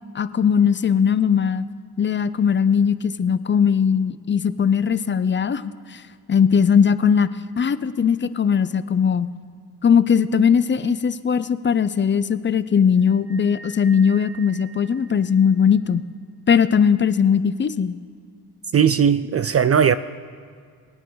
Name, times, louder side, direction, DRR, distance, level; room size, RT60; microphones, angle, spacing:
voice 1, 0.1-1.6 2.0-6.0 6.3-7.3 7.6-9.3 9.8-16.0 16.5-18.0, left 7 dB, 30° left, 0.5 m, -19 dB
sound 1, 13.0-15.6, right 3 dB, 75° right, 1.8 m, -44 dB
voice 2, 18.7-19.9, right 7 dB, 35° right, 0.4 m, -17 dB
23.5 x 9.0 x 3.9 m
cardioid pair, 80°, 40 cm